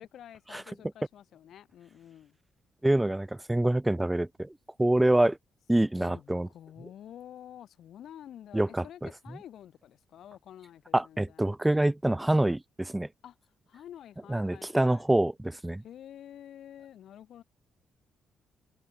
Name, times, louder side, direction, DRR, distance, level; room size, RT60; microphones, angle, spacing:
voice 1, 0.0-2.4 6.0-11.5 13.2-13.3 13.7-15.1 15.8-17.4, left 10 dB, 65° left, 4.0 m, -49 dB
voice 2, 2.8-4.5 4.8-5.4 5.7-6.5 8.5-8.8 10.9-13.1 14.3-15.8, right 1 dB, 10° right, 0.4 m, -26 dB
cardioid pair, 135°, 0 cm